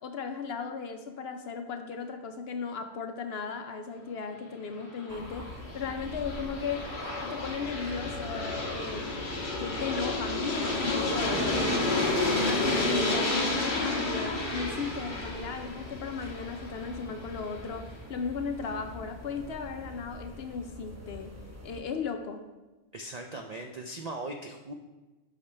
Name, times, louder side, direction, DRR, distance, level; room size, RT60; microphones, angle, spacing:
voice 1, 0.0-5.5 5.7-6.9 7.2-9.3 9.6-11.9 12.5-21.3 21.6-22.4, left 5 dB, 60° left, 6 dB, 0.7 m, -36 dB
Aircraft, 4.9-17.7, left 2 dB, 40° left, 1.2 m, -31 dB
sound 1, 5.1-21.8, left 1 dB, 15° right, 0.9 m, -45 dB
sound 2, 7.9-15.1, equal, 35° right, 1.7 m, -48 dB
voice 2, 22.9-24.7, right 2 dB, 65° right, 3 dB, 0.4 m, -39 dB
8.5 x 5.8 x 3.3 m, 1.2 s
omnidirectional pair, 1.3 m